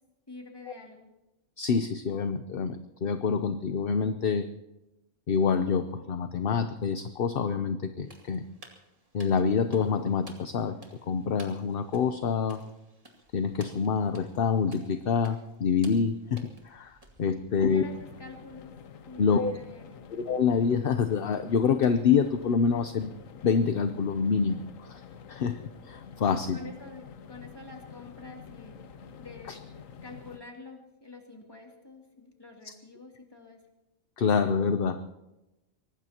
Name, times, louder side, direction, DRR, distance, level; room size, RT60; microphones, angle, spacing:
voice 1, 0.3-1.1 17.3-18.8 19.1-20.1 26.3-28.8 29.2-29.6 30.0-33.6, left 3 dB, 20° left, 0 dB, 2.8 m, -47 dB
voice 2, 1.6-4.5 5.3-8.4 9.1-10.8 11.1-12.6 13.3-17.8 19.2-19.5 20.1-23.1 23.4-25.0 25.3-26.6 29.5-29.6 32.6-32.7 34.2-35.2, left 6 dB, 50° left, 9 dB, 0.8 m, -27 dB
sound 1, 8.0-17.8, right 1 dB, 30° right, 2.3 m, -55 dB
sound 2, 17.6-30.4, left 7 dB, 90° left, 1.3 m, -48 dB
24.0 x 19.0 x 2.9 m, 0.97 s
omnidirectional pair, 1.3 m